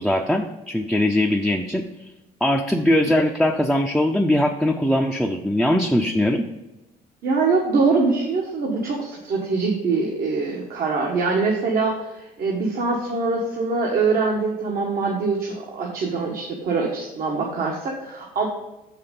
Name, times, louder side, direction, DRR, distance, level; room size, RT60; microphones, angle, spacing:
voice 1, 0.0-2.1 2.4-6.5, left 1 dB, ahead, 2 dB, 0.5 m, -21 dB
voice 2, 7.2-18.5, right 4 dB, 60° right, -1 dB, 1.3 m, -23 dB
6.5 x 5.8 x 5.2 m, 1.0 s
cardioid pair, 110°, 17 cm